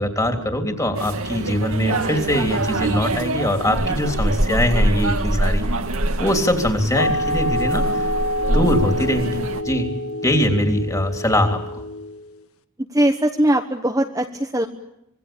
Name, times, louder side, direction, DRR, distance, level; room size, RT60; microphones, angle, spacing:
voice 1, 0.0-5.6 6.2-8.1 8.5-9.9 10.2-11.8, left 1 dB, 15° left, 5 dB, 3.2 m, -22 dB
sound 1, 0.9-9.6, right 1 dB, 75° right, 2.0 m, -24 dB
sound 2, 7.0-12.4, left 1 dB, 80° left, 1.5 m, -26 dB
voice 2, 12.9-14.7, right 1 dB, 15° right, 3 dB, 1.2 m, -20 dB
26.5 x 22.0 x 8.7 m, 0.81 s
head